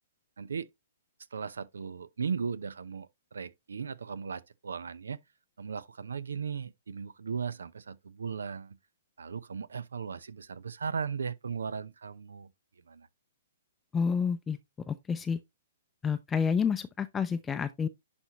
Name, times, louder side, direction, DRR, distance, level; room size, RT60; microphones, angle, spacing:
voice 1, 0.4-0.7 1.3-5.2 5.6-8.8 9.2-12.5 12.9-13.1, right 6 dB, 85° right, 0.7 m, -37 dB
voice 2, 13.9-14.6 14.9-15.4 16.0-17.9, left 6 dB, 15° left, 0.5 m, -29 dB
11.0 x 4.3 x 3.0 m
hypercardioid pair, 130°, 0 cm